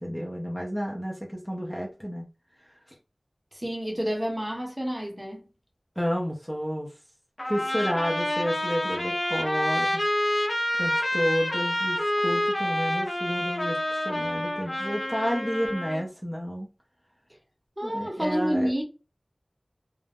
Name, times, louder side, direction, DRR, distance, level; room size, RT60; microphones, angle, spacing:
voice 1, 0.0-2.3 6.0-6.9 7.5-10.0 10.8-12.0 12.2-16.7 17.8-18.7, equal, 5° left, 0.6 m, -30 dB
voice 2, 3.5-5.5 17.8-18.8, equal, 20° right, 0.9 m, -29 dB
Trumpet, 7.4-16.0, left 1 dB, 50° left, 0.7 m, -28 dB
2.3 x 2.1 x 3.4 m
wide cardioid pair, 50°, 0 cm